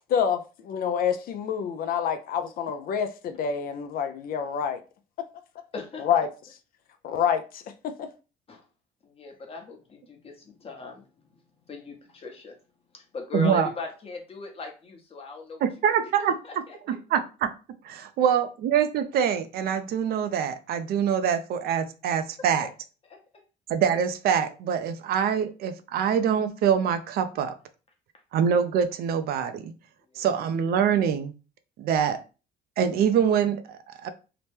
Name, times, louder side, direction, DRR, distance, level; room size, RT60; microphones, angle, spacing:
voice 1, 0.1-4.8 6.0-6.3 7.0-8.1, left 7 dB, 60° left, 0.4 m, -27 dB
voice 2, 5.7-6.1 8.5-8.7 9.0-12.6 12.9-17.0 22.6-22.7 23.1-23.4 30.1-30.3, left 4 dB, 35° left, 0.9 m, -39 dB
voice 3, 13.3-13.7 15.6-16.4 16.9-17.2 18.2-22.7 23.7-27.5 28.3-29.7 30.2-31.3 31.8-32.2 32.8-34.1, right 8 dB, 65° right, 0.4 m, -24 dB
2.8 x 2.1 x 3.3 m
cardioid pair, 110°, 17 cm